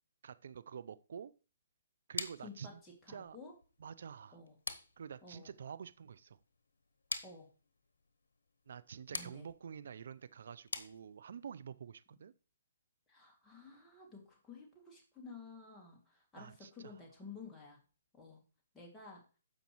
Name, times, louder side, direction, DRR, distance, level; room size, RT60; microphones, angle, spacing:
voice 1, 0.2-1.3 2.1-2.8 3.1-3.4 3.8-4.4 5.0-6.4 8.7-12.3 16.4-16.9, right 7 dB, 65° right, 0.5 m, -48 dB
sound 1, 2.2-11.5, left 3 dB, 85° left, 0.9 m, -47 dB
voice 2, 2.4-3.5 4.3-4.6 5.2-5.5 7.2-7.5 9.1-9.5 13.1-17.8 18.1-18.4 18.7-19.2, left 4 dB, 10° left, 2.4 m, -53 dB
14.0 x 5.3 x 3.1 m
hypercardioid pair, 145°, 0 cm